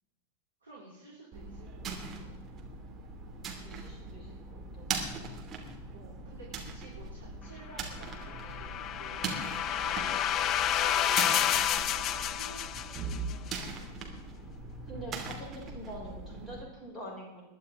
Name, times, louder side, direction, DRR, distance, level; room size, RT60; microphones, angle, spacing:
voice 1, 0.6-2.4 5.9-13.9, right 2 dB, 75° right, -6 dB, 4.2 m, -52 dB
sound 1, 1.3-16.6, right 4 dB, 25° right, 2.7 m, -41 dB
voice 2, 3.6-5.1 14.9-17.4, right 1 dB, 10° left, -3 dB, 6.2 m, -45 dB
sound 2, 8.1-13.3, left 10 dB, 35° left, 0.5 m, -30 dB
21.5 x 11.5 x 3.8 m, 1.1 s
figure-of-eight pair, 90°, 0 cm